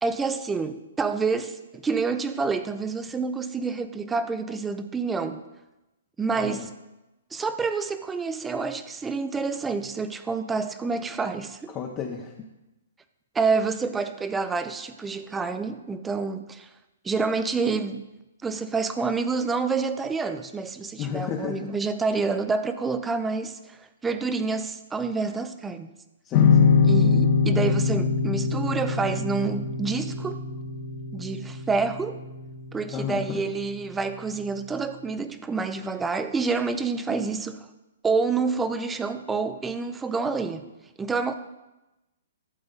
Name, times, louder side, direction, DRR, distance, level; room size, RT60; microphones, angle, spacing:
voice 1, 0.0-5.4 6.2-6.7 7.3-11.8 13.3-16.7 17.0-18.1 18.4-23.8 24.0-25.9 26.9-30.4 31.1-32.2 32.7-37.7 38.0-40.6 41.0-41.3, right 4 dB, 10° right, 10 dB, 0.6 m, -28 dB
voice 2, 6.4-6.7 11.7-12.3 21.0-21.7 26.2-26.7 32.9-33.4, left 7 dB, 25° left, 1 dB, 0.8 m, -32 dB
sound 1, 26.3-33.5, left 5 dB, 40° left, 1.2 m, -23 dB
12.0 x 7.7 x 4.0 m, 1.0 s
hypercardioid pair, 145°, 0 cm